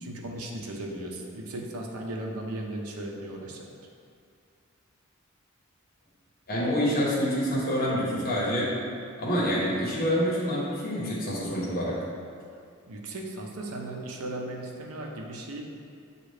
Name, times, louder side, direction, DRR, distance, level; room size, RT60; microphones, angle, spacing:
voice 1, 0.0-3.7 12.9-15.6, right 1 dB, 80° right, 0 dB, 0.6 m, -36 dB
voice 2, 6.5-8.8 9.2-12.0, equal, 45° left, -6 dB, 1.0 m, -27 dB
6.6 x 2.4 x 3.2 m, 2.3 s
head